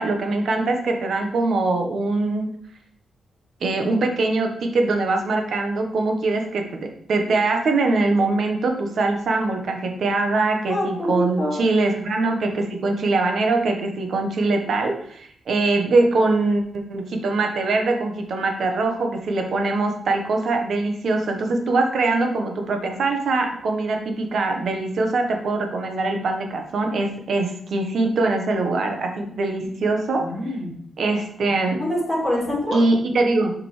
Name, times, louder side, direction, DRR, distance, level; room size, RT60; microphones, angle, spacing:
voice 1, 0.0-2.5 3.6-30.3 31.0-31.8 32.7-33.5, right 3 dB, 55° right, 4 dB, 1.1 m, -22 dB
voice 2, 10.7-11.5 30.2-30.7 31.8-32.8, equal, ahead, -7 dB, 2.9 m, -25 dB
7.5 x 5.1 x 3.2 m, 0.65 s
wide cardioid pair, 165°, 0 cm